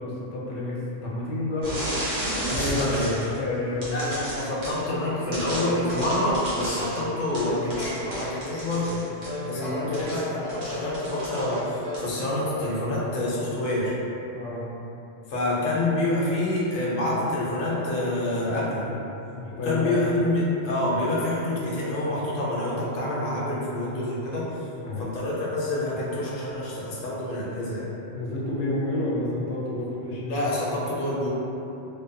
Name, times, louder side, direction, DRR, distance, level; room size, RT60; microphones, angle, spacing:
voice 1, 0.0-2.8 3.3-4.2 9.3-10.2 14.3-14.6 19.3-20.0 24.7-25.2 28.1-30.4, left 1 dB, 80° left, -5 dB, 0.9 m, -30 dB
sound 1, 1.6-3.4 3.8-4.8 5.3-9.4 9.9-11.7 11.9-12.2, right 1 dB, 90° right, 1.2 m, -33 dB
voice 2, 2.5-3.2 3.9-9.0 9.4-13.9 15.3-18.9 19.5-24.7 25.0-27.9 30.3-31.3, left 1 dB, 55° left, -6 dB, 0.7 m, -27 dB
sound 2, 5.5-7.0 7.4-8.3 9.3-10.7 11.1-12.2, left 2 dB, 45° right, 0.5 m, -37 dB
2.6 x 2.2 x 2.5 m, 2.9 s
omnidirectional pair, 1.2 m